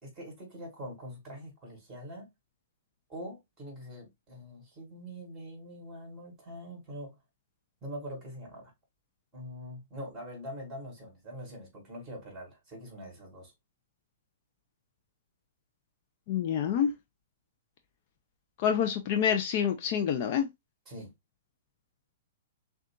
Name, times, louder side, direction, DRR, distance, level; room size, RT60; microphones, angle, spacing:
voice 1, 0.0-2.3 3.1-7.2 7.8-8.7 9.3-13.5 20.9-21.1, equal, 15° right, 3.1 m, -43 dB
voice 2, 16.3-16.9 18.6-20.5, left 8 dB, 45° left, 0.6 m, -27 dB
6.5 x 2.4 x 2.4 m
hypercardioid pair, 155°, 0 cm